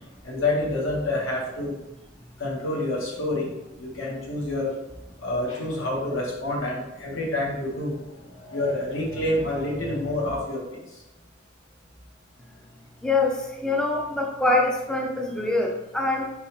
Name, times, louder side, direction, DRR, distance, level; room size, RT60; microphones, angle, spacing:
voice 1, 0.2-1.7 2.4-4.7 5.2-11.0, left 1 dB, 90° left, -2 dB, 1.2 m, -28 dB
voice 2, 13.0-16.3, left 2 dB, 5° left, 0 dB, 0.4 m, -24 dB
3.9 x 3.9 x 2.9 m, 0.97 s
head